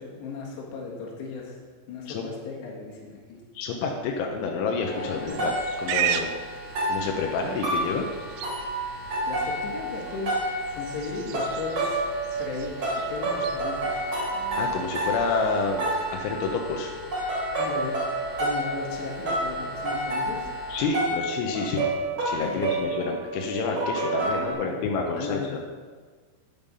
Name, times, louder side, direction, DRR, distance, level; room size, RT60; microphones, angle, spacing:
voice 1, 0.0-3.4 5.0-5.4 9.3-10.3 10.7-12.0 12.4-13.9 17.6-18.0 18.4-20.5 22.4-22.7 24.3-24.7 25.2-25.5, left 4 dB, 70° left, -2 dB, 3.7 m, -36 dB
voice 2, 3.6-5.5 5.8-6.3 6.9-8.1 14.6-16.9 20.7-21.8 22.2-25.6, left 4 dB, 90° left, 1 dB, 3.3 m, -29 dB
sound 1, 4.8-20.8, equal, 45° left, 3.9 m, -44 dB
sound 2, 4.8-24.5, right 1 dB, 35° right, 2.5 m, -30 dB
Livestock farm animals working animals, 5.3-16.1, right 9 dB, 85° right, 2.7 m, -37 dB
9.0 x 8.9 x 5.5 m, 1.5 s
omnidirectional pair, 5.3 m